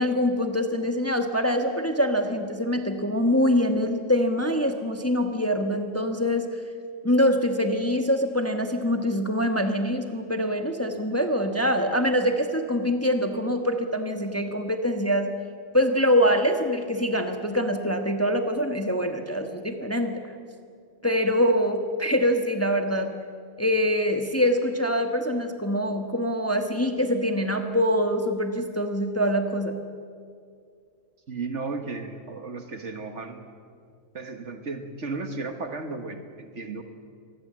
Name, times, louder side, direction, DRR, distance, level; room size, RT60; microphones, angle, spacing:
voice 1, 0.0-6.5 7.0-15.3 15.7-20.2 21.0-23.1 23.6-29.8, equal, 10° left, 5 dB, 1.2 m, -24 dB
voice 2, 31.3-33.5 34.1-36.8, right 3 dB, 60° right, 7 dB, 1.8 m, -34 dB
24.5 x 19.5 x 7.6 m, 2.3 s
omnidirectional pair, 1.4 m